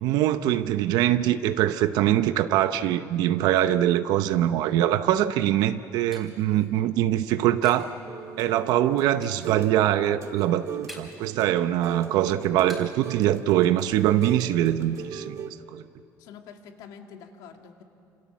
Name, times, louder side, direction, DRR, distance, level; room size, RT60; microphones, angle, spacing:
voice 1, 0.0-7.9 8.4-15.8, right 12 dB, 80° right, 11 dB, 0.8 m, -23 dB
sound 1, 5.4-8.0 8.3-8.8 9.2-9.7 10.1-11.3 11.7-13.1 13.4-13.5 13.8-14.3, equal, ahead, 4.6 m, -49 dB
sound 2, 8.1-9.8 10.0-15.5, right 8 dB, 50° right, 1.6 m, -39 dB
voice 2, 16.2-17.8, left 7 dB, 90° left, 4 dB, 2.3 m, -46 dB
30.0 x 27.0 x 7.4 m, 2.6 s
cardioid pair, 165°, 7 cm